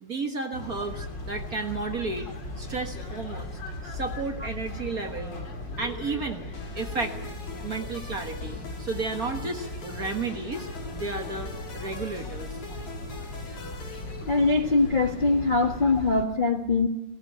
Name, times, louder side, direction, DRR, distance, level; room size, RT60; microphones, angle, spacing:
voice 1, 0.0-2.3 2.6-3.5 3.8-5.3 5.8-6.5 6.7-7.2 7.6-12.5, right 3 dB, 40° right, 5 dB, 1.3 m, -33 dB
sound 1, 0.5-16.2, left 2 dB, 40° left, 3.1 m, -38 dB
sound 2, 6.5-14.8, left 3 dB, 80° left, 5.4 m, -43 dB
voice 2, 14.3-16.9, left 3 dB, 60° left, 3 dB, 0.5 m, -22 dB
18.5 x 18.0 x 8.0 m, 0.88 s
omnidirectional pair, 3.3 m